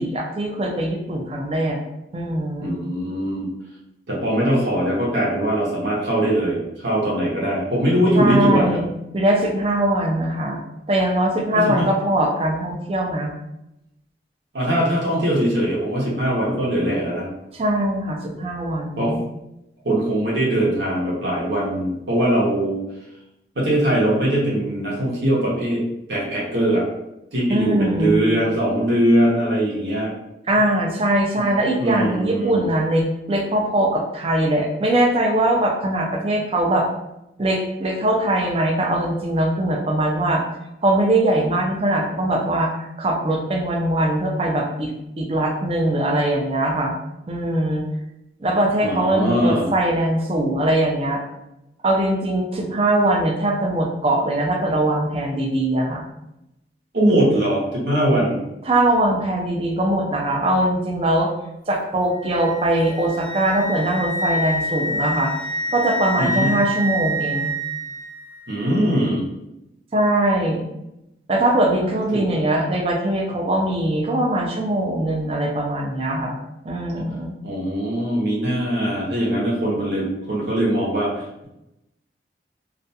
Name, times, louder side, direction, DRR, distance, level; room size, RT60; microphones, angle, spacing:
voice 1, 0.0-1.8 2.1-2.7 8.2-8.9 9.1-10.6 10.9-13.3 17.5-19.2 27.5-28.2 30.5-36.9 37.4-40.4 40.8-44.9 45.2-46.9 47.3-47.9 48.4-51.2 51.8-56.0 58.7-61.3 61.7-65.3 65.7-67.5 69.9-70.6 71.3-76.4 76.7-77.3, right 1 dB, 30° right, 0 dB, 0.4 m, -21 dB
voice 2, 2.6-3.5 4.1-8.8 11.5-11.9 14.5-17.3 19.0-19.2 19.8-22.8 23.5-25.8 26.1-26.8 27.3-30.1 31.8-32.6 48.8-49.7 56.9-58.4 66.2-66.5 68.5-69.3 72.1-72.2 77.4-81.5, right 1 dB, 80° right, -5 dB, 0.8 m, -21 dB
Wind instrument woodwind instrument, 62.2-68.1, equal, 15° left, 0.6 m, -27 dB
2.4 x 2.2 x 2.7 m, 0.89 s
head